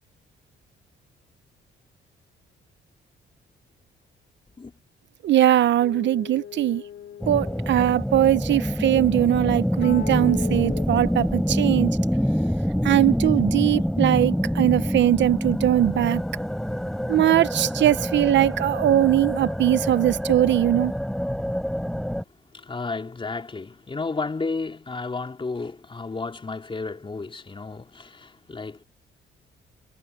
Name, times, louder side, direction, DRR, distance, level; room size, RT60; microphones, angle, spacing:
voice 1, 5.2-6.8 7.3-12.0 12.8-16.2 17.1-20.9, right 13 dB, 65° right, 0.7 m, -20 dB
sound 1, 5.8-8.1 9.8-10.9, left 10 dB, 65° left, 4.1 m, -39 dB
sound 2, 7.2-22.2, equal, ahead, 3.8 m, -26 dB
voice 2, 22.5-28.8, left 3 dB, 25° left, 4.0 m, -32 dB
cardioid pair, 90°, 20 cm